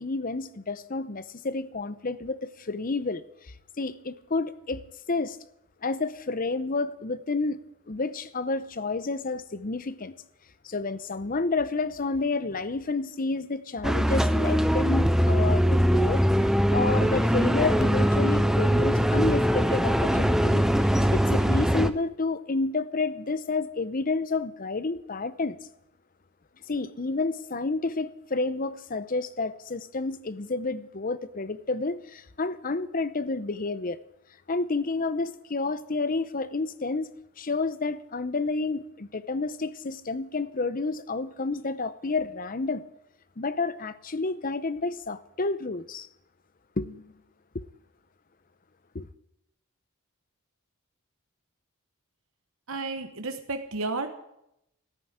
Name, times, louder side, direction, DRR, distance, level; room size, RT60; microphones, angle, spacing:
voice 1, 0.0-4.8 5.1-5.4 5.8-7.6 7.9-10.1 10.6-16.2 16.7-25.6 26.7-34.0 34.5-37.1 37.4-42.8 43.4-46.1 46.8-47.0 47.5-47.6 48.9-49.1, left 3 dB, 40° left, 0.7 m, -30 dB
sound 1, 13.8-21.9, equal, ahead, 0.6 m, -22 dB
voice 2, 52.7-54.1, right 3 dB, 70° right, 1.2 m, -32 dB
13.5 x 9.4 x 10.0 m
head